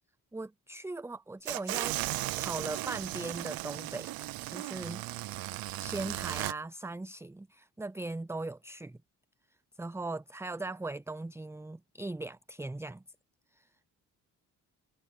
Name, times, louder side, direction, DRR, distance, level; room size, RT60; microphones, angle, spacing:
voice 1, 0.3-2.0 2.4-5.0 5.8-9.0 9.8-13.0 13.5-13.7, right 2 dB, 5° right, 0.6 m, -39 dB
sound 1, 1.5-6.5, right 17 dB, 50° right, 0.5 m, -36 dB
hypercardioid pair, 45°, 46 cm